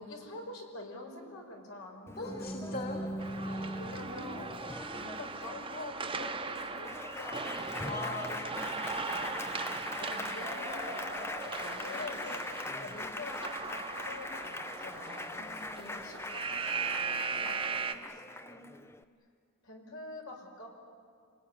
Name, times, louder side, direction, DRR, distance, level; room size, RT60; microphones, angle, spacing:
voice 1, 0.0-3.1 3.7-4.6 5.1-8.6 10.0-12.4 12.8-15.4 16.0-16.4 16.7-18.6 19.6-20.7, left 2 dB, 80° left, 1 dB, 5.3 m, -46 dB
Applause, 2.1-19.0, left 1 dB, 10° left, 0.6 m, -41 dB
voice 2, 2.2-3.1 3.4-3.8 4.1-5.2 7.8-9.9 15.4-16.0, left 2 dB, 45° left, -1 dB, 2.6 m, -43 dB
sound 1, 3.2-17.9, right 4 dB, 25° right, 1.0 m, -39 dB
29.0 x 20.0 x 10.0 m, 2.3 s
head